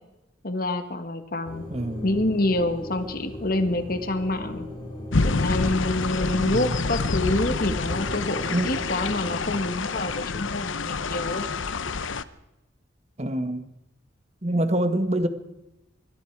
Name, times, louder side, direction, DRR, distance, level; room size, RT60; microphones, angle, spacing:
voice 1, 0.4-1.6 2.0-4.7 5.2-11.5, left 2 dB, 50° left, 1.7 m, -27 dB
sound 1, 1.4-9.6, left 1 dB, 25° left, 5.2 m, -39 dB
voice 2, 1.7-2.1 6.4-6.8 7.5-7.8 8.5-8.7 13.2-13.7 14.4-15.3, right 1 dB, 35° right, 1.6 m, -26 dB
sound 2, 5.1-12.2, left 3 dB, 85° left, 0.9 m, -27 dB
24.5 x 22.0 x 4.8 m
head